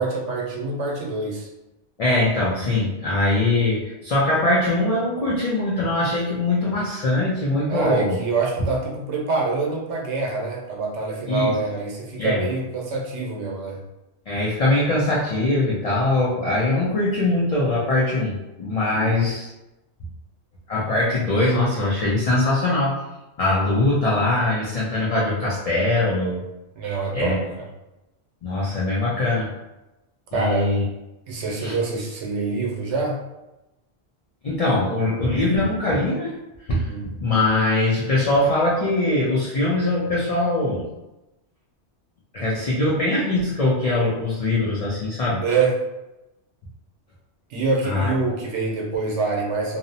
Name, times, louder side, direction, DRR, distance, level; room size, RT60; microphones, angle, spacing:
voice 1, 0.0-1.5 7.7-13.8 18.9-19.2 26.8-27.7 30.3-30.8 31.3-33.2 36.8-37.1 45.4-45.8 47.5-49.8, right 4 dB, 80° right, -1 dB, 0.9 m, -25 dB
voice 2, 2.0-8.2 11.3-11.6 12.2-12.5 14.3-19.5 20.7-23.0 23.4-26.5 27.1-27.4 28.4-29.5 30.3-30.8 31.6-31.8 34.4-36.3 36.7-40.9 42.3-45.4 47.8-48.1, left 2 dB, 60° left, -6 dB, 0.4 m, -22 dB
2.6 x 2.0 x 2.6 m, 0.97 s
omnidirectional pair, 1.2 m